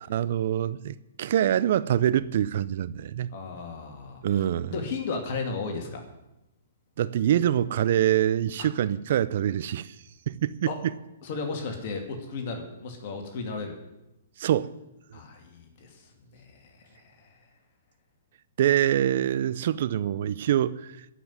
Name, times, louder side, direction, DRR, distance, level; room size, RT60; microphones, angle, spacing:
voice 1, 0.1-3.3 4.2-4.7 7.0-9.9 10.3-10.7 14.4-14.7 18.6-21.0, right 11 dB, 55° right, 0.7 m, -25 dB
voice 2, 3.3-6.0 8.6-8.7 10.7-10.8 11.2-13.8 15.1-17.4, left 4 dB, 50° left, 2.6 m, -35 dB
15.0 x 5.9 x 9.7 m
hypercardioid pair, 125°, 0 cm